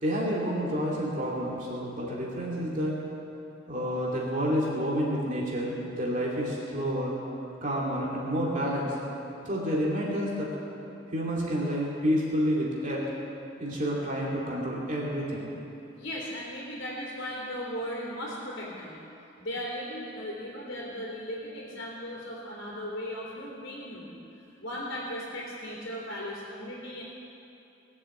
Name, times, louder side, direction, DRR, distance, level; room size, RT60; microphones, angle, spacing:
voice 1, 0.0-3.0 3.7-7.1 7.6-9.0 9.4-10.5 11.1-13.0 13.6-15.5, equal, 40° right, -5 dB, 2.6 m, -29 dB
voice 2, 16.0-19.0 19.4-24.2 24.6-27.0, equal, 70° left, -5 dB, 3.0 m, -37 dB
20.5 x 7.2 x 7.8 m, 2.8 s
head